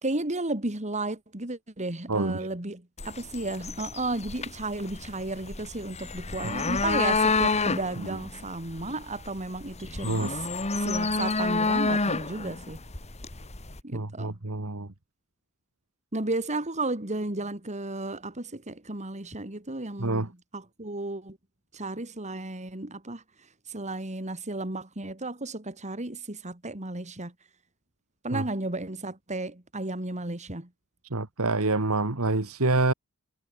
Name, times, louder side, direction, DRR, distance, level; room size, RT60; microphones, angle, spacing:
voice 1, 0.0-10.4 10.8-12.8 13.8-14.4 16.1-21.4 21.7-23.2 23.7-27.3 28.2-30.7, right 2 dB, 35° right, 3.1 m, -33 dB
voice 2, 2.1-2.5 8.0-8.2 10.0-10.4 13.9-14.9 20.0-20.3 28.3-28.4 31.1-32.9, right 2 dB, 70° right, 1.9 m, -27 dB
sound 1, 3.0-13.8, left 3 dB, 30° left, 2.0 m, -29 dB
head